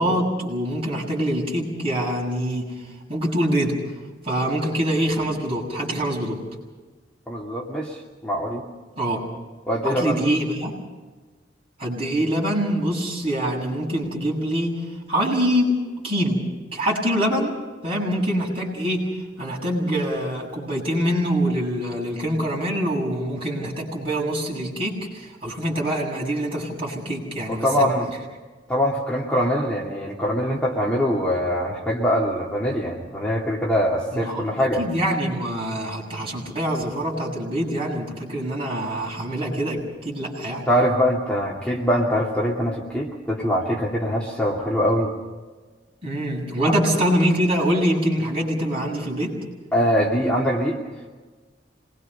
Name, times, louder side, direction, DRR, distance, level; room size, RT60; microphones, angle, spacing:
voice 1, 0.0-2.7 3.1-3.8 4.2-6.4 9.0-9.2 9.8-10.7 11.8-14.8 15.1-15.8 16.0-16.4 16.7-17.5 17.8-19.1 19.4-27.9 34.2-40.7 46.0-49.4, equal, 35° right, -2 dB, 7.3 m, -24 dB
voice 2, 7.3-8.7 9.7-10.2 27.5-28.1 28.7-34.8 40.7-45.1 46.6-46.7 49.7-50.8, equal, 5° left, -3 dB, 2.4 m, -23 dB
26.5 x 21.5 x 5.6 m, 1.3 s
head